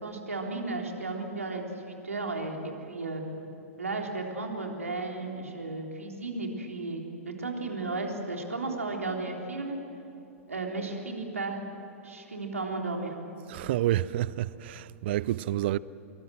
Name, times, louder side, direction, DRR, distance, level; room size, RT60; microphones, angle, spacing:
voice 1, 0.0-3.2 3.8-9.8 10.5-11.6 12.0-13.2, right 3 dB, 75° right, 3.6 m, -34 dB
voice 2, 13.5-15.8, right 14 dB, 45° right, 0.6 m, -29 dB
25.5 x 23.5 x 7.7 m
figure-of-eight pair, 100°, 8 cm